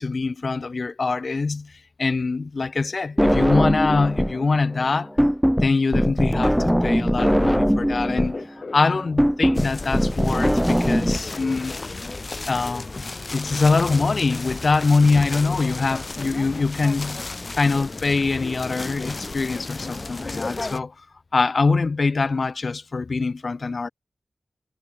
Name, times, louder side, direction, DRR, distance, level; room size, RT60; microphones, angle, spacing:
voice 1, 0.0-1.7 2.0-5.1 5.6-11.8 12.5-12.9 13.3-17.2 17.5-20.9 21.3-23.9, left 4 dB, 65° left, 0.3 m, -23 dB
sound 1, 3.2-4.4 4.7-11.2, equal, ahead, 0.5 m, -21 dB
sound 2, 9.6-20.8, left 3 dB, 50° left, 1.9 m, -33 dB
cardioid pair, 50°, 0 cm